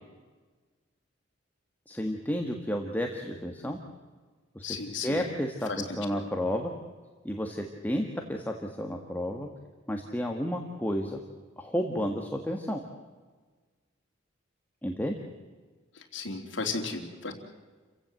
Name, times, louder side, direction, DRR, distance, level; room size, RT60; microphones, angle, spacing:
voice 1, 1.9-3.8 4.6-4.8 5.0-5.7 6.0-6.7 7.2-9.5 9.9-11.2 11.6-12.8 14.8-15.2, equal, 10° left, 2 dB, 1.6 m, -31 dB
voice 2, 4.6-5.2 5.7-5.8 6.1-6.2 15.9-17.3, left 4 dB, 65° left, 3 dB, 3.4 m, -34 dB
29.5 x 16.0 x 7.8 m, 1.4 s
head